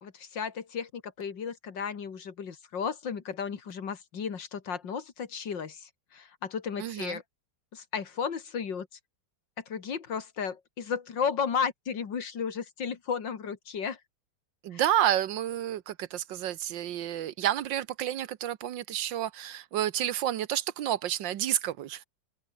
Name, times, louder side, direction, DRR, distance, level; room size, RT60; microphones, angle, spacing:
voice 1, 0.0-7.2 7.7-8.9 9.7-14.0 14.7-14.8, left 6 dB, 75° left, 2.7 m, -34 dB
voice 2, 6.8-7.2 14.6-22.0, right 11 dB, 80° right, 1.7 m, -30 dB
open air
omnidirectional pair, 2.0 m